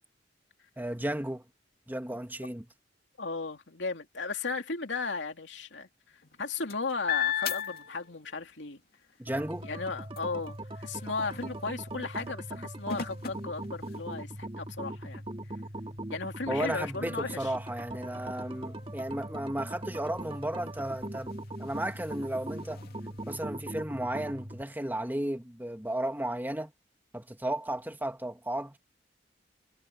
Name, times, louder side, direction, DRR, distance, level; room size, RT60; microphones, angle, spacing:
voice 1, 0.8-1.4 1.9-2.7 9.2-9.7 16.5-22.8 23.3-26.7 27.1-28.8, right 1 dB, 10° right, 2.1 m, -34 dB
voice 2, 3.2-5.9 6.4-8.8 9.6-15.3 16.1-17.5, left 4 dB, 75° left, 2.7 m, -35 dB
sound 1, 6.1-8.5 8.9-14.4 15.0-15.1 15.5-23.4, left 9 dB, 55° left, 2.7 m, -40 dB
sound 2, 9.3-24.6, right 1 dB, 30° right, 2.0 m, -40 dB
head